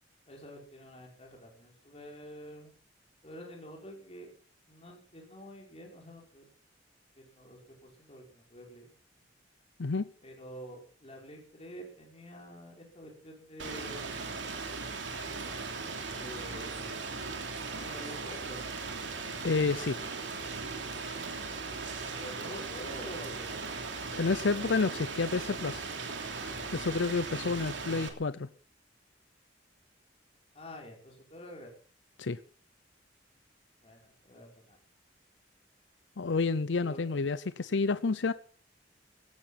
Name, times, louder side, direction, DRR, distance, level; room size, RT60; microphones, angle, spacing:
voice 1, 0.3-2.7 3.2-4.3 4.7-6.5 7.2-8.9 10.2-14.2 16.1-17.1 17.7-18.7 22.2-23.6 30.5-31.7 33.8-34.8 36.8-37.0, equal, 35° left, 5.6 m, -48 dB
Rain, 13.6-28.1, right 4 dB, 80° right, 3.2 m, -38 dB
voice 2, 19.4-20.0 24.1-25.8 26.7-28.5 32.2-32.4 36.2-38.3, left 4 dB, 80° left, 0.6 m, -29 dB
17.0 x 13.5 x 5.9 m
head